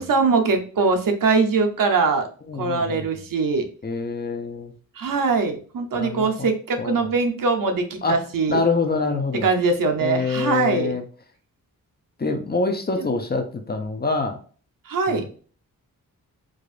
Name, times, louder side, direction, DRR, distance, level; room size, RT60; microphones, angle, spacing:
voice 1, 0.0-2.3 2.6-3.7 5.0-8.6 9.4-10.9 13.0-13.1 14.9-15.2, right 4 dB, 65° right, 5 dB, 0.8 m, -22 dB
voice 2, 2.5-3.0 3.8-4.7 5.9-6.5 6.8-7.0 8.0-8.2 8.5-9.5 10.0-11.0 12.2-14.4 15.1-15.3, left 4 dB, 30° left, 5 dB, 0.5 m, -25 dB
4.8 x 2.5 x 2.5 m, 0.41 s
wide cardioid pair, 135°, 36 cm